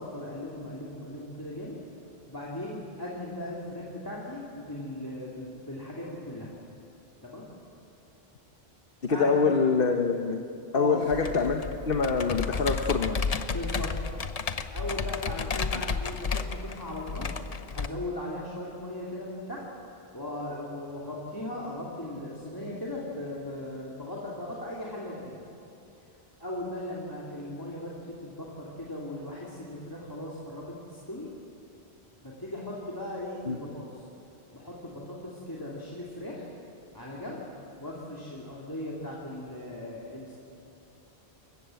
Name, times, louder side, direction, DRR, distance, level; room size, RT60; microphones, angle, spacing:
voice 1, 0.0-1.8 2.3-6.5 7.2-7.5 9.0-9.5 10.7-11.0 13.5-13.9 14.7-17.3 17.7-19.7 20.1-25.4 26.4-31.3 32.2-34.0 34.5-36.4 36.9-37.4 37.8-40.3, left 1 dB, 20° left, -4 dB, 2.7 m, -38 dB
voice 2, 9.0-10.4 10.7-13.2 33.5-33.6, left 5 dB, 60° left, 4 dB, 1.3 m, -25 dB
Computer keyboard, 11.1-17.9, left 5 dB, 40° left, 0.8 m, -32 dB
28.0 x 15.0 x 7.7 m, 2.7 s
omnidirectional pair, 1.1 m